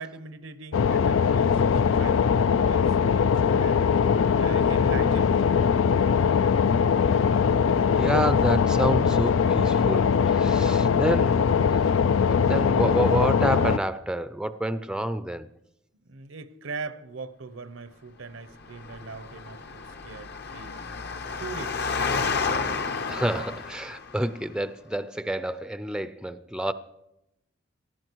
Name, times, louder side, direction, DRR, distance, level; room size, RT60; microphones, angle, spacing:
voice 1, 0.0-5.4 16.0-20.8 21.4-22.0, right 4 dB, 85° right, 1.0 m, -40 dB
sound 1, 0.7-13.8, left 6 dB, 85° left, 0.4 m, -21 dB
voice 2, 7.7-11.4 11.7-11.9 12.3-15.5 23.1-26.7, right 1 dB, 5° right, 0.5 m, -28 dB
Engine, 18.6-24.2, left 4 dB, 55° left, 0.9 m, -31 dB
18.5 x 13.0 x 4.6 m
head